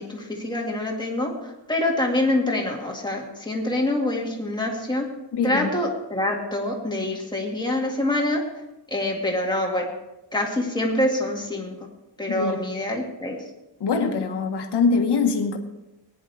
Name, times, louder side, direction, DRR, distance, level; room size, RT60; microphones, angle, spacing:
voice 1, 0.0-5.1 5.4-8.4 8.9-9.9 10.3-11.7 12.2-13.4, left 1 dB, 10° left, -1 dB, 2.0 m, -25 dB
voice 2, 5.3-5.7 12.3-12.7 13.8-15.6, left 4 dB, 70° left, 5 dB, 1.5 m, -23 dB
18.5 x 10.5 x 3.4 m, 0.98 s
wide cardioid pair, 170°, 42 cm